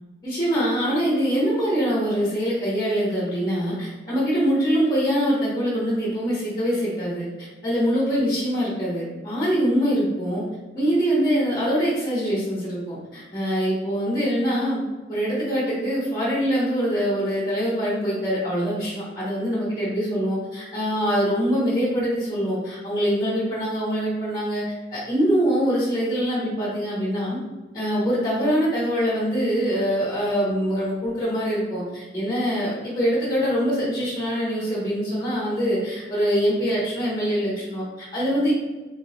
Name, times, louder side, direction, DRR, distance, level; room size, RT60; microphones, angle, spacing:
voice 1, 0.2-10.4 10.7-14.8 15.1-24.6 24.9-27.4 27.7-38.5, equal, 20° left, -8 dB, 1.3 m, -24 dB
3.5 x 3.3 x 3.1 m, 1.2 s
head